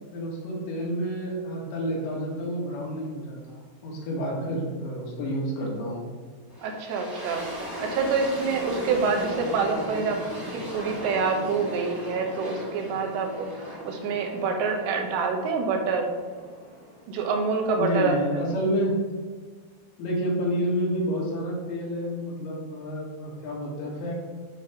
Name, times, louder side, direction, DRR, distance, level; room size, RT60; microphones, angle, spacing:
voice 1, 0.1-6.1 17.8-19.0 20.0-24.1, equal, 85° left, -3 dB, 4.0 m, -29 dB
sound 1, 6.5-17.4, equal, 25° right, 0.4 m, -37 dB
voice 2, 6.6-7.5 7.8-10.2 10.7-13.5 13.8-16.1 17.1-18.2, right 5 dB, 85° right, 3 dB, 3.1 m, -26 dB
11.5 x 5.1 x 2.9 m, 1.5 s
omnidirectional pair, 5.0 m